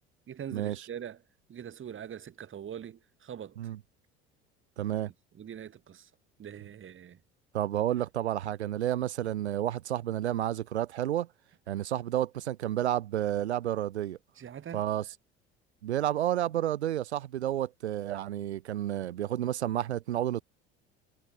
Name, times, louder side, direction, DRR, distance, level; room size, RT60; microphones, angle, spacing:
voice 1, 0.3-1.2 1.5-3.6 5.3-6.1 6.4-7.2 14.4-14.8, right 9 dB, 40° right, 2.2 m, -43 dB
voice 2, 4.8-5.1 7.5-11.3 11.7-14.2 14.7-15.1 15.8-20.4, right 12 dB, 90° right, 1.3 m, -30 dB
hypercardioid pair, 70°, 33 cm